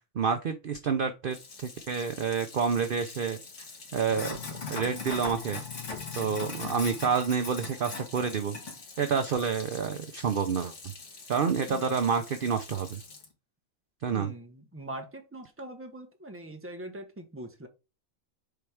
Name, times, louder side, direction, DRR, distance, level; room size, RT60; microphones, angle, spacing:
voice 1, 0.1-3.4 3.9-5.6 6.2-8.6 9.0-10.7 11.3-13.0 14.0-14.3, right 6 dB, 50° right, 0.7 m, -28 dB
Sink (filling or washing), 1.3-13.3, left 4 dB, 60° left, 1.9 m, -42 dB
voice 2, 14.1-17.7, right 1 dB, 10° right, 1.0 m, -42 dB
6.9 x 4.4 x 3.5 m
omnidirectional pair, 1.4 m